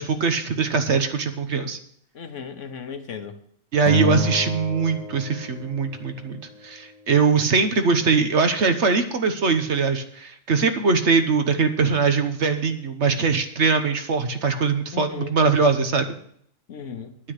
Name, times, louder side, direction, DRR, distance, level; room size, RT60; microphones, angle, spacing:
voice 1, 0.0-1.8 3.7-16.1, right 4 dB, 60° right, 7 dB, 1.3 m, -21 dB
voice 2, 2.1-3.4 14.9-15.3 16.7-17.2, left 6 dB, 70° left, 8 dB, 1.3 m, -36 dB
Acoustic guitar, 3.9-6.2, left 2 dB, 30° right, 1.0 m, -29 dB
9.8 x 9.5 x 6.6 m, 0.66 s
omnidirectional pair, 1.3 m